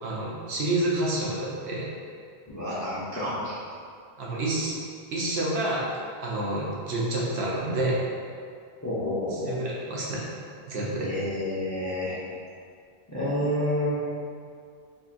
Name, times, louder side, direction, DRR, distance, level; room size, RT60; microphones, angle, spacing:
voice 1, 0.0-1.9 4.2-4.7 5.1-5.9 6.2-8.0 9.3-10.2 10.7-11.1, right 2 dB, 80° right, -5 dB, 0.9 m, -28 dB
voice 2, 2.5-3.5 8.8-9.5 11.0-12.2 13.1-14.0, left 1 dB, 25° left, -10 dB, 0.4 m, -29 dB
3.6 x 2.7 x 2.4 m, 2.3 s
omnidirectional pair, 1.1 m